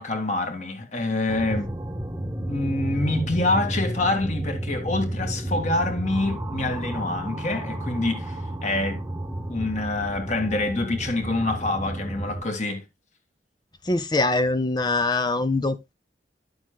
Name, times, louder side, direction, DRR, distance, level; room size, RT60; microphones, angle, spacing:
voice 1, 0.0-1.7 2.5-9.0 9.5-12.8, left 2 dB, 40° left, 2.0 m, -26 dB
sound 1, 1.3-12.4, right 1 dB, 15° right, 0.8 m, -31 dB
voice 2, 13.9-15.9, left 2 dB, 25° left, 0.5 m, -23 dB
11.5 x 7.9 x 2.2 m
head